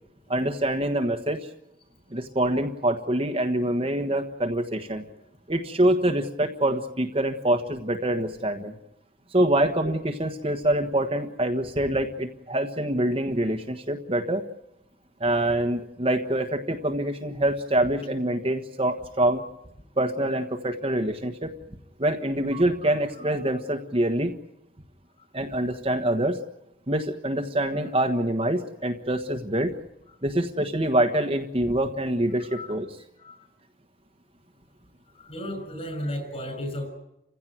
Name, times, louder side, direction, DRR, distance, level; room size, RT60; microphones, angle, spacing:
voice 1, 0.3-1.4 2.1-5.0 5.5-8.7 9.3-14.4 15.2-19.4 20.0-21.5 22.0-24.3 25.3-26.4 26.9-29.7 30.2-32.9, right 1 dB, 30° right, 5 dB, 1.4 m, -25 dB
voice 2, 32.4-32.7 33.2-33.4 35.1-36.9, equal, 35° left, 8 dB, 6.7 m, -34 dB
29.5 x 16.0 x 9.2 m, 0.86 s
head